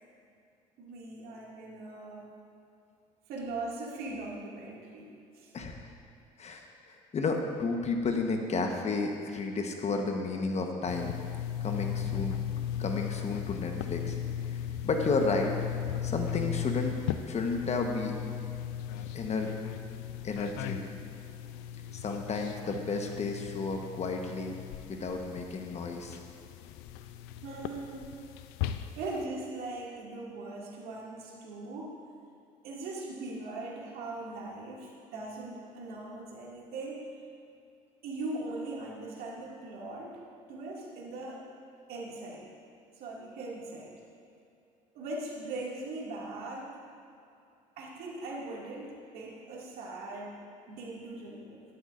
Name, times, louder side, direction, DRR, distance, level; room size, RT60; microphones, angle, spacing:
voice 1, 0.8-2.3 3.3-5.5 27.4-28.2 29.0-31.9 32.6-37.1 38.0-40.2 40.5-41.5 41.9-42.5 43.0-43.9 44.9-46.7 47.8-50.4 50.7-51.6, right 2 dB, 65° right, -4 dB, 2.4 m, -40 dB
voice 2, 5.5-5.9 6.4-11.1 11.6-12.4 12.8-14.2 14.5-15.6 16.0-17.0 17.2-18.1 19.1-19.5 20.2-20.8 21.9-24.6 24.9-26.2, left 3 dB, 40° left, 3 dB, 1.2 m, -32 dB
sound 1, 10.9-29.3, left 10 dB, 75° left, 0.5 m, -37 dB
12.5 x 12.0 x 2.6 m, 2.6 s
hypercardioid pair, 65°, 17 cm